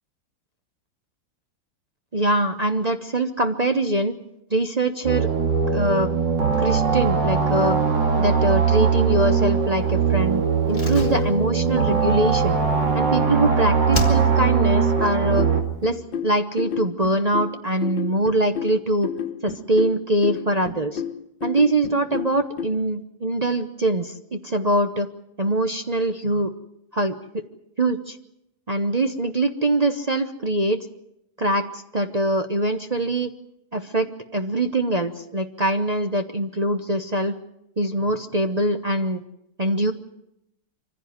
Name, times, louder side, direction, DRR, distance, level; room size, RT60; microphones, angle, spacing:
voice 1, 2.1-4.1 4.5-5.3 5.7-6.1 6.6-7.8 8.2-10.4 10.7-12.6 12.9-15.5 15.8-19.1 19.4-21.0 21.4-25.1 25.4-26.5 26.9-27.4 27.8-28.2 28.7-30.8 31.4-33.3 33.7-37.4 37.8-39.2 39.6-39.9, right 1 dB, 35° right, 5 dB, 0.7 m, -23 dB
sound 1, 5.0-15.6, right 5 dB, 65° right, 2.9 m, -21 dB
Slam, 10.7-13.5 13.9-14.7 14.9-15.0, left 3 dB, 35° left, 2.6 m, -33 dB
sound 2, 15.0-22.7, left 7 dB, 85° left, 2.0 m, -32 dB
24.5 x 15.5 x 9.4 m, 0.82 s
omnidirectional pair, 2.0 m